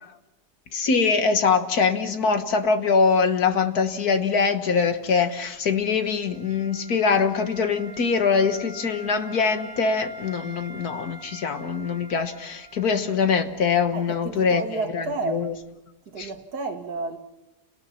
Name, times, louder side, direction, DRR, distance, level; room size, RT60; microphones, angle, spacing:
voice 1, 0.7-14.6 14.9-15.5 16.2-16.3, left 5 dB, 70° left, 1.9 m, -23 dB
Wind instrument woodwind instrument, 5.5-13.3, equal, 5° right, 3.6 m, -45 dB
voice 2, 13.9-15.5 16.1-17.2, right 4 dB, 80° right, 2.1 m, -31 dB
29.5 x 19.0 x 5.8 m
omnidirectional pair, 1.7 m